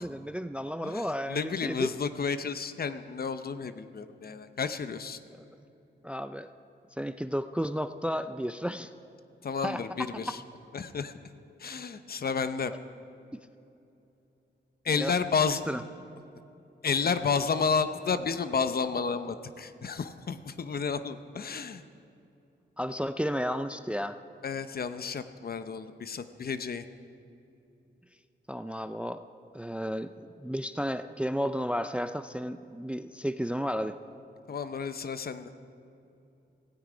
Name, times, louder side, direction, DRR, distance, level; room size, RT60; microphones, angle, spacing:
voice 1, 0.0-1.9 6.0-6.5 7.0-8.9 9.6-10.3 13.3-13.4 14.9-15.1 15.5-15.8 22.8-24.2 28.5-29.2 29.5-34.0, equal, 5° right, 11 dB, 0.3 m, -33 dB
voice 2, 0.8-5.2 9.4-10.4 10.7-11.1 11.6-12.7 14.8-15.6 16.8-21.8 24.4-26.8 34.5-35.5, left 5 dB, 55° left, 11 dB, 0.7 m, -31 dB
17.0 x 16.0 x 5.1 m, 2.8 s
wide cardioid pair, 165°, 19 cm